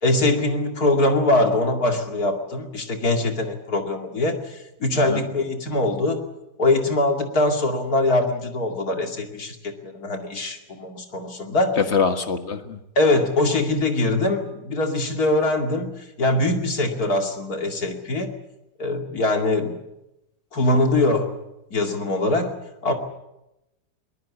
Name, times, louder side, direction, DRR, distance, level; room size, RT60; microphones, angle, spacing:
voice 1, 0.0-6.2 6.6-11.8 13.0-18.3 18.8-19.8 20.5-21.4 21.7-22.5 22.8-22.9, left 2 dB, 55° left, 2.9 m, -22 dB
voice 2, 11.8-12.8, left 5 dB, 40° left, 1.7 m, -23 dB
21.5 x 21.0 x 8.4 m
omnidirectional pair, 2.0 m